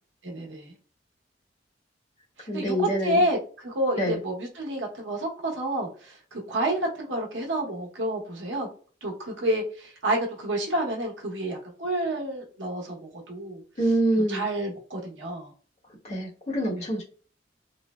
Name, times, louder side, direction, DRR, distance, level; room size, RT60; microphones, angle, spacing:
voice 1, 0.2-0.7 2.4-3.4 3.6-8.7 9.0-13.0 13.3-13.6 14.1-15.5, right 1 dB, 90° right, 0 dB, 0.9 m, -29 dB
voice 2, 2.5-3.2 3.9-4.2 13.8-14.5 16.0-17.0, right 1 dB, 35° left, -5 dB, 1.1 m, -25 dB
3.2 x 2.1 x 2.2 m, 0.39 s
head